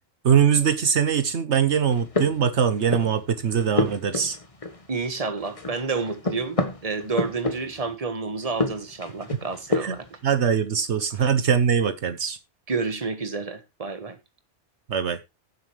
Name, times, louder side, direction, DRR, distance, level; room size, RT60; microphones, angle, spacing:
voice 1, 0.2-4.4 9.3-9.4 9.8-10.0 10.2-12.4 14.9-15.2, right 7 dB, 75° right, 1.2 m, -22 dB
sound 1, 1.8-3.2 3.5-5.1 5.4-7.9 8.4-10.1, left 2 dB, 30° left, 1.4 m, -29 dB
voice 2, 4.9-10.2 12.7-14.2, right 4 dB, 30° right, 1.5 m, -30 dB
15.5 x 7.4 x 3.3 m
omnidirectional pair, 1.2 m